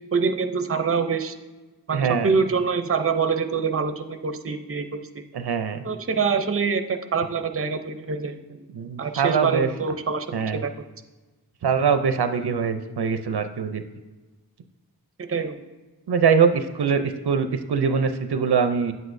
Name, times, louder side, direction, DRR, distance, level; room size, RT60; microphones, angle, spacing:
voice 1, 0.1-1.3 1.9-5.2 5.8-8.7 9.0-10.3 10.5-10.8 15.2-15.6, right 5 dB, 35° right, 8 dB, 0.6 m, -25 dB
voice 2, 1.9-2.3 5.3-5.8 8.7-9.7 10.3-10.6 11.6-13.8 16.1-18.9, right 6 dB, 90° right, 8 dB, 0.6 m, -23 dB
9.1 x 8.1 x 2.6 m, 1.2 s
wide cardioid pair, 55°, 38 cm